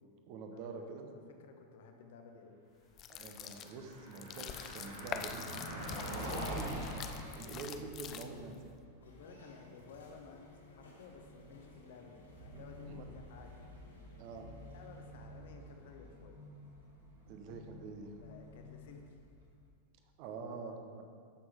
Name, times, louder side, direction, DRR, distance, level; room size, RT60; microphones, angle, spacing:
voice 1, 0.3-1.1 3.1-7.1 7.3-8.7 12.8-13.0 14.2-14.5 17.3-18.1 20.2-21.0, right 4 dB, 45° right, 5 dB, 1.0 m, -46 dB
voice 2, 1.4-2.6 9.0-13.5 14.3-16.4 18.2-19.2, left 5 dB, 55° left, 4 dB, 1.0 m, -55 dB
sound 1, 2.9-8.6, left 8 dB, 30° left, 0.5 m, -45 dB
Car passing by, 3.3-19.4, equal, 80° right, 2.4 m, -47 dB
sound 2, 9.0-15.1, left 1 dB, 75° left, 1.9 m, -61 dB
13.0 x 6.2 x 3.6 m, 2.3 s
figure-of-eight pair, 90°, 0 cm